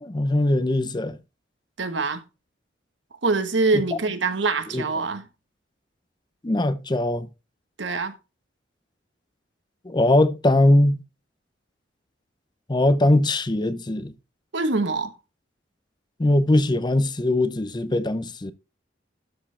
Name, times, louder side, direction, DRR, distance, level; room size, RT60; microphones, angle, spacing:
voice 1, 0.0-1.2 3.7-3.8 4.7-4.8 6.4-7.3 9.9-11.0 12.7-14.1 16.2-18.5, left 1 dB, 25° left, 0.6 m, -21 dB
voice 2, 1.8-2.2 3.2-5.3 7.8-8.2 14.5-15.1, right 3 dB, 80° right, 1.2 m, -24 dB
12.5 x 5.0 x 3.3 m
head